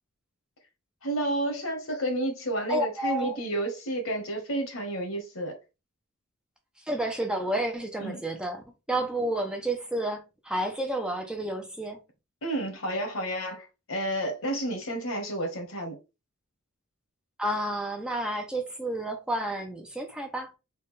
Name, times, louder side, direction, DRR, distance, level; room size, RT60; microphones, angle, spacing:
voice 1, 1.0-5.6 8.0-8.2 12.4-16.0, right 1 dB, 70° left, 1.4 m, -31 dB
voice 2, 2.7-3.4 6.9-12.0 17.4-20.5, right 1 dB, 5° right, 0.5 m, -30 dB
4.0 x 2.3 x 3.6 m
head